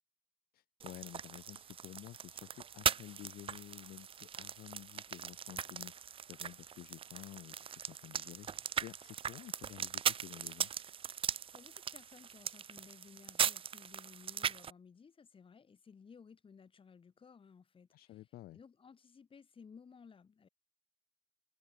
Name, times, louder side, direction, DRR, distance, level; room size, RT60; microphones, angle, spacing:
voice 1, 0.5-10.7 17.9-18.6, left 15 dB, 65° left, 0.5 m, -52 dB
sound 1, 0.8-14.7, right 8 dB, 35° right, 0.5 m, -39 dB
voice 2, 11.5-18.3 18.5-20.5, left 6 dB, 30° left, 2.3 m, -58 dB
cardioid pair, 110°, 17 cm